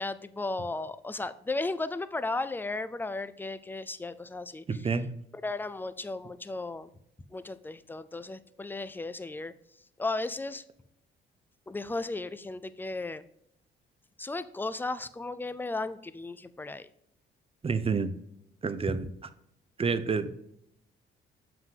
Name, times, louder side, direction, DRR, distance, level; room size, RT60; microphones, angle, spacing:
voice 1, 0.0-4.6 5.4-6.9 7.3-9.5 10.0-10.6 11.7-13.2 14.2-16.9 18.9-19.1, left 2 dB, 10° left, 14 dB, 0.4 m, -35 dB
voice 2, 4.7-5.1 17.6-18.1 18.6-19.1 19.8-20.3, right 5 dB, 30° right, 12 dB, 0.7 m, -28 dB
7.3 x 5.8 x 3.7 m, 0.74 s
cardioid pair, 90°, 20 cm